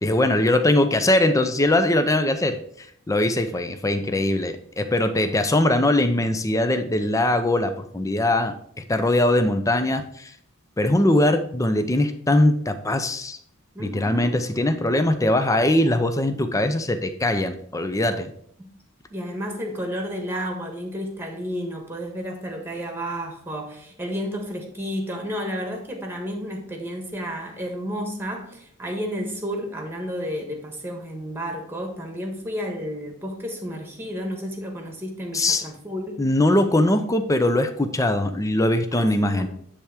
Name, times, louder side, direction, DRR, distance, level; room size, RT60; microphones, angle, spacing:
voice 1, 0.0-10.3 10.8-13.4 13.8-18.3 35.3-35.6 36.2-39.5, left 1 dB, 15° left, 8 dB, 0.6 m, -21 dB
voice 2, 13.7-14.3 18.6-18.7 19.1-36.3 39.0-39.5, equal, 10° right, 3 dB, 1.4 m, -32 dB
10.0 x 3.5 x 4.9 m, 0.64 s
head